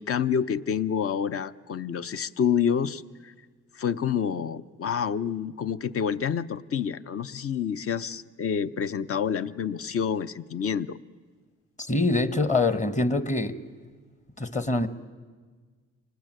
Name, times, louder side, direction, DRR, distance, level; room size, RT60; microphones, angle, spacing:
voice 1, 0.0-3.3 3.7-11.0, left 7 dB, 50° left, 14 dB, 0.8 m, -28 dB
voice 2, 11.8-13.6 14.4-14.9, left 2 dB, 25° left, 13 dB, 1.4 m, -24 dB
25.5 x 19.0 x 9.1 m, 1.5 s
cardioid pair, 90°, 30 cm